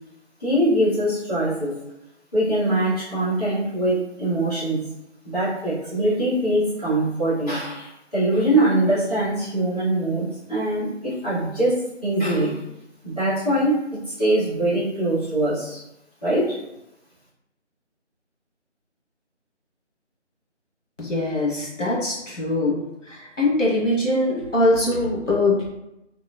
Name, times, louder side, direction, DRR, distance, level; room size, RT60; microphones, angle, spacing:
voice 1, 0.4-1.8 2.3-4.8 5.2-12.6 13.0-15.8 16.2-16.6, right 1 dB, 30° left, -13 dB, 1.3 m, -23 dB
voice 2, 21.0-22.8 23.1-25.7, left 2 dB, 90° left, -4 dB, 1.3 m, -22 dB
2.9 x 2.3 x 2.3 m, 0.87 s
figure-of-eight pair, 165°, 36 cm